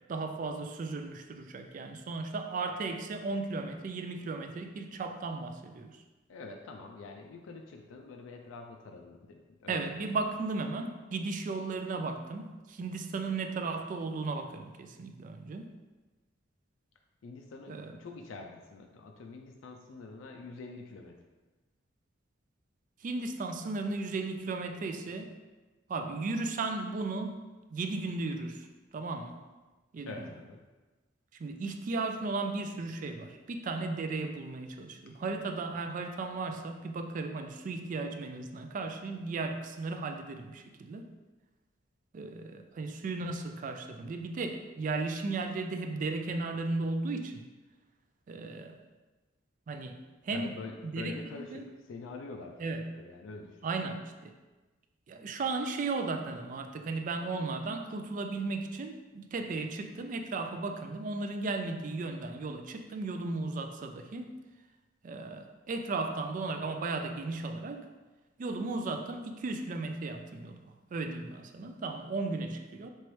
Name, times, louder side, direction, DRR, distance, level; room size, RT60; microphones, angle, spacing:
voice 1, 0.1-6.0 9.7-15.7 17.7-17.9 23.0-25.3 25.9-27.4 27.7-28.7 28.9-29.4 29.9-30.1 31.4-41.1 42.1-47.4 48.3-48.8 49.7-50.0 50.2-50.6 50.8-51.7 52.6-52.9 53.6-54.3 55.1-64.3 65.0-67.9 68.4-70.6 70.9-72.9, right 3 dB, 40° right, 6 dB, 0.3 m, -35 dB
voice 2, 6.3-10.0 17.2-21.2 30.1-30.6 50.3-53.6, left 3 dB, 90° left, 2 dB, 0.4 m, -46 dB
4.5 x 3.0 x 3.1 m, 1.2 s
head